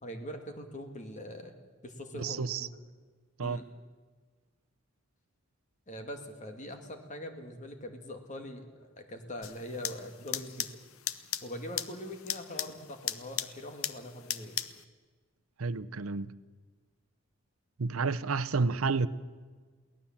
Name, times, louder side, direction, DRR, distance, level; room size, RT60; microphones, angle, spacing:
voice 1, 0.0-1.5 1.8-2.7 3.4-3.6 5.9-10.8 11.4-14.6, left 1 dB, 35° left, 2.0 m, -42 dB
voice 2, 2.1-2.7 3.4-3.6 15.6-16.3 17.8-19.1, right 4 dB, 90° right, 0.7 m, -30 dB
sound 1, 9.4-14.8, left 11 dB, 90° left, 0.9 m, -38 dB
23.0 x 17.5 x 7.4 m
head